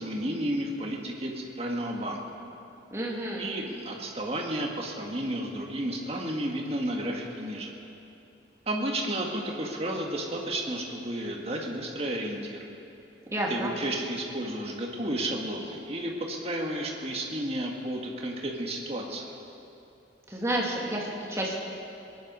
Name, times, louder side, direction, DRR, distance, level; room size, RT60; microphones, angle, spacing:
voice 1, 0.0-2.2 3.4-7.7 8.7-12.6 13.5-19.3, right 1 dB, 35° right, 0 dB, 1.8 m, -32 dB
voice 2, 2.9-3.6 13.3-13.7 20.3-21.5, right 1 dB, 15° right, -3 dB, 2.2 m, -30 dB
22.0 x 11.0 x 5.5 m, 2.8 s
head